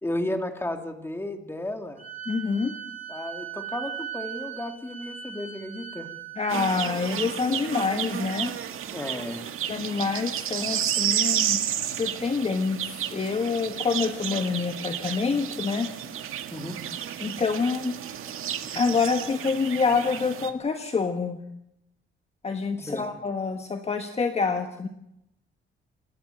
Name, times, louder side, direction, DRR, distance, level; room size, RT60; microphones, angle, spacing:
voice 1, 0.0-2.0 3.1-6.1 8.9-9.5 16.5-16.8 22.8-23.1, left 1 dB, 10° left, 5 dB, 2.5 m, -33 dB
Wind instrument woodwind instrument, 2.0-6.7, right 9 dB, 40° right, 2.7 m, -39 dB
voice 2, 2.3-2.7 6.4-8.5 9.7-12.8 13.1-15.9 17.2-17.9 18.7-21.4 22.4-24.9, left 4 dB, 30° left, 6 dB, 1.5 m, -27 dB
sound 1, 6.5-20.5, right 10 dB, 80° right, 1.8 m, -31 dB
28.0 x 11.5 x 9.1 m, 0.80 s
cardioid pair, 135°, 21 cm